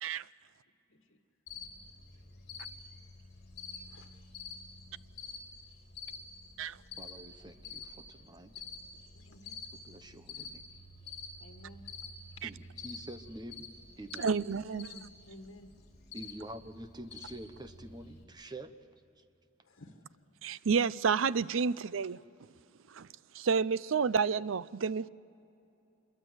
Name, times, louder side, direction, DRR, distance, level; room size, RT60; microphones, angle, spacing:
Cricket, 1.5-18.2, left 4 dB, 55° left, 4.3 m, -48 dB
voice 1, 3.8-4.2 4.9-5.0 9.1-9.7 11.4-11.9 14.4-15.7 19.6-20.2, left 1 dB, 90° left, 5 dB, 1.6 m, -54 dB
voice 2, 7.0-8.6 9.7-10.6 12.4-13.7 14.0-14.3 16.1-18.7 19.2-19.3, right 1 dB, 20° right, 9 dB, 1.0 m, -47 dB
voice 3, 14.2-14.9 20.4-22.2 22.9-23.1 23.3-25.1, right 5 dB, 80° right, 19 dB, 0.5 m, -30 dB
26.5 x 22.5 x 8.0 m, 2.7 s
head